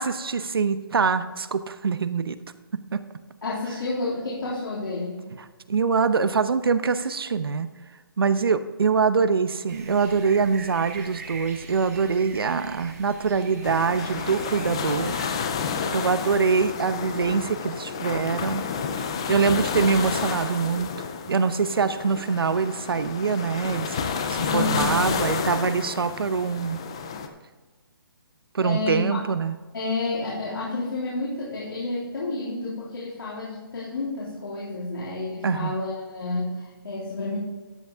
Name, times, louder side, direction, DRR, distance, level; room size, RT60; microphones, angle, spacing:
voice 1, 0.0-2.4 2.7-3.0 5.7-7.7 8.2-15.2 15.9-18.6 19.3-20.9 21.3-24.0 24.3-26.8 28.5-29.5 35.4-35.7, right 5 dB, 80° right, 12 dB, 0.8 m, -24 dB
voice 2, 3.4-5.2 24.4-24.9 28.6-29.2 29.7-37.4, left 3 dB, 70° left, -7 dB, 3.5 m, -30 dB
sound 1, 9.7-15.3, right 4 dB, 40° right, 1.7 m, -42 dB
sound 2, 13.6-27.3, left 6 dB, 15° left, 0.3 m, -30 dB
13.0 x 8.2 x 3.5 m, 1.3 s
hypercardioid pair, 175°, 12 cm